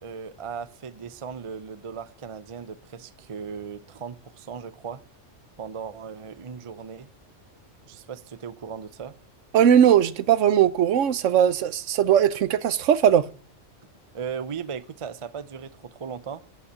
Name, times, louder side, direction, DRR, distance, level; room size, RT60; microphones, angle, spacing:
voice 1, 0.0-5.0 5.6-7.1 7.9-9.1 14.1-16.4, right 6 dB, 35° right, 0.5 m, -37 dB
voice 2, 9.5-13.3, right 9 dB, 80° right, 1.1 m, -19 dB
9.0 x 8.4 x 8.0 m
omnidirectional pair, 1.3 m